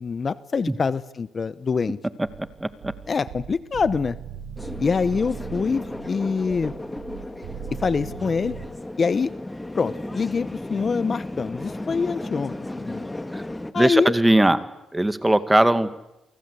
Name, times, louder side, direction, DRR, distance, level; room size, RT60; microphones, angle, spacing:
voice 1, 0.0-2.0 3.1-4.2 4.8-6.7 7.8-8.6 9.0-9.3 9.7-13.1 13.7-14.1, left 5 dB, 40° left, 16 dB, 1.0 m, -25 dB
sound 1, 2.2-8.7, right 7 dB, 85° right, 5.7 m, -39 dB
voice 2, 2.6-2.9 13.3-13.4 13.8-14.6 14.9-15.9, right 1 dB, 10° right, 12 dB, 2.2 m, -19 dB
sound 2, 4.6-13.7, left 1 dB, 10° left, 1.9 m, -35 dB
29.5 x 24.0 x 8.4 m, 0.94 s
cardioid pair, 90°, 0 cm